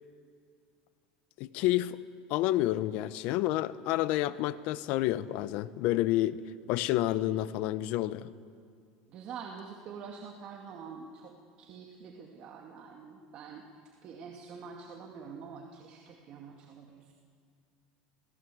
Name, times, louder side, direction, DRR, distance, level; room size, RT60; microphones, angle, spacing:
voice 1, 1.4-2.0 2.3-6.4 6.7-8.3, left 15 dB, 60° left, 15 dB, 0.9 m, -29 dB
voice 2, 9.1-13.6 14.0-17.1, right 6 dB, 45° right, 1 dB, 2.3 m, -46 dB
29.5 x 18.5 x 7.9 m, 2.2 s
supercardioid pair, 135°, 2 cm